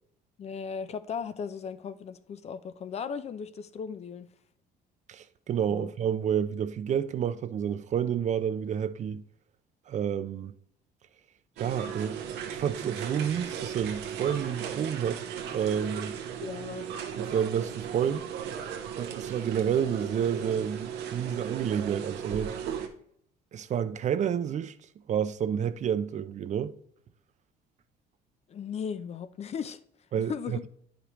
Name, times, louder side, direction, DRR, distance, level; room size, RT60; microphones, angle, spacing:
voice 1, 0.4-4.3 5.7-5.9 16.4-16.9 28.5-29.8 30.2-30.6, left 6 dB, 40° left, 0.5 m, -37 dB
voice 2, 5.1-9.2 9.9-10.5 11.6-12.2 12.5-15.2 15.5-16.2 17.2-18.3 19.0-22.6 23.5-24.8 25.1-26.7 30.1-30.7, right 8 dB, 45° right, 0.5 m, -29 dB
sound 1, 11.6-22.9, right 8 dB, 80° right, 0.9 m, -36 dB
9.6 x 5.1 x 3.0 m
cardioid pair, 110°, 17 cm